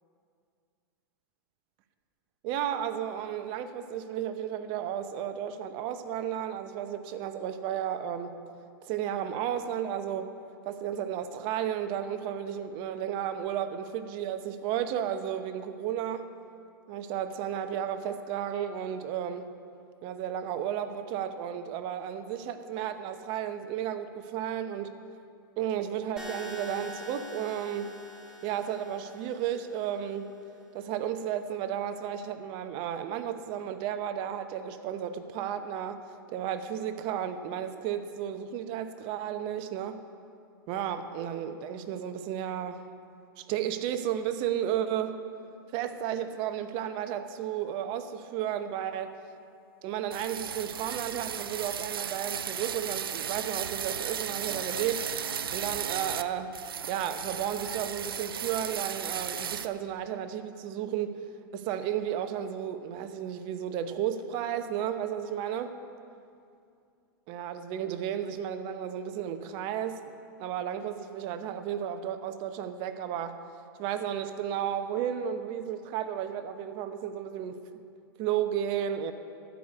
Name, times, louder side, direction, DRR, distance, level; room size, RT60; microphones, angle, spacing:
voice 1, 2.4-8.4 8.8-10.3 10.6-16.3 16.9-19.5 20.0-25.0 25.6-28.0 28.4-30.4 30.7-36.0 36.3-40.0 40.7-42.8 43.4-45.2 45.7-49.2 49.8-55.1 55.5-56.5 56.9-61.3 61.5-65.8 67.3-70.0 70.4-73.4 73.8-77.6 78.2-79.1, right 9 dB, 45° right, 9 dB, 0.8 m, -33 dB
sound 1, 26.2-30.2, left 2 dB, 5° right, 2.0 m, -45 dB
sound 2, 50.1-56.2 56.5-59.7, right 8 dB, 85° right, 0.5 m, -35 dB
13.0 x 5.1 x 8.3 m, 2.4 s
hypercardioid pair, 115°, 12 cm